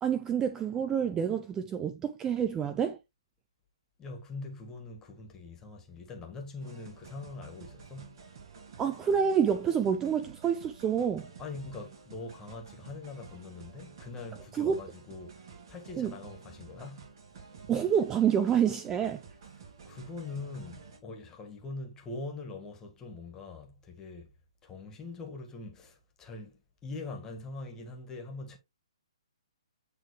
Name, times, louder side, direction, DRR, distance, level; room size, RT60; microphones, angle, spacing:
voice 1, 0.0-3.0 8.8-11.3 14.5-14.8 16.0-16.1 17.7-19.2, right 8 dB, 15° right, 0.5 m, -28 dB
voice 2, 4.0-8.2 11.4-17.1 19.6-24.3 24.6-26.5 26.8-28.6, left 3 dB, 15° left, 1.9 m, -43 dB
sound 1, 6.6-21.0, right 6 dB, 45° right, 2.7 m, -51 dB
9.4 x 3.7 x 3.3 m
hypercardioid pair, 135°, 3 cm